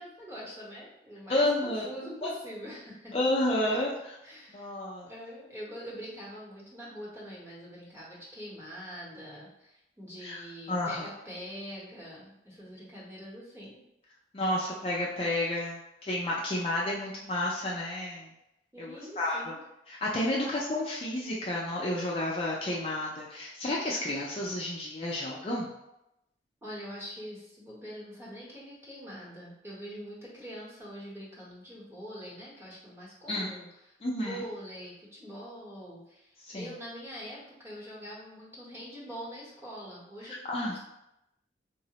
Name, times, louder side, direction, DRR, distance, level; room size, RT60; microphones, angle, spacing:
voice 1, 0.0-3.1 3.6-3.8 4.2-4.7 5.1-13.8 18.7-19.6 20.4-20.5 26.6-40.8, equal, 15° right, -6 dB, 0.9 m, -44 dB
voice 2, 1.3-1.8 2.2-2.3 3.1-4.2 4.5-5.1 10.2-11.1 14.3-18.3 18.8-19.5 19.9-25.7 33.3-33.5 34.0-34.4 36.4-36.7 40.2-40.8, left 1 dB, 30° left, -4 dB, 0.3 m, -31 dB
3.8 x 2.0 x 2.8 m, 0.88 s
head